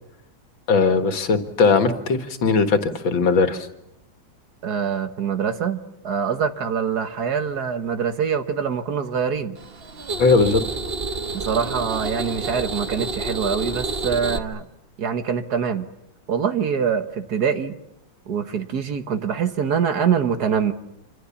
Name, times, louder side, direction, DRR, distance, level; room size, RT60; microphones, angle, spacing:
voice 1, 0.7-3.7 10.2-10.6, left 4 dB, 75° left, 8 dB, 2.4 m, -19 dB
voice 2, 4.6-9.6 11.3-14.7 15.0-15.9 16.3-17.8 18.3-20.7, right 7 dB, 55° right, 9 dB, 1.7 m, -24 dB
sound 1, 9.6-14.4, right 3 dB, 35° right, 1.1 m, -29 dB
27.0 x 26.0 x 7.2 m, 0.83 s
omnidirectional pair, 2.1 m